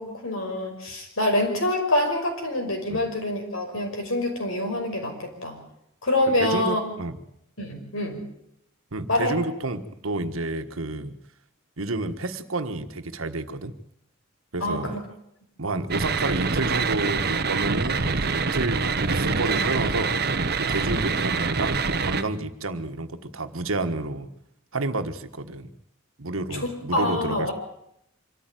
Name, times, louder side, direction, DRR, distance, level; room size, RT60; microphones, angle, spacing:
voice 1, 0.0-5.6 6.0-6.8 7.6-8.2 9.1-9.4 14.6-15.0 15.7-15.9 26.5-27.5, left 1 dB, 70° left, 3 dB, 5.7 m, -26 dB
voice 2, 6.4-7.2 8.9-11.1 11.8-13.7 14.5-15.0 15.6-20.2 20.6-24.3 24.7-25.7 26.2-27.5, right 2 dB, 80° right, 8 dB, 1.5 m, -30 dB
sound 1, 15.9-22.2, right 4 dB, 50° right, 1.0 m, -25 dB
25.0 x 14.0 x 9.2 m, 0.78 s
head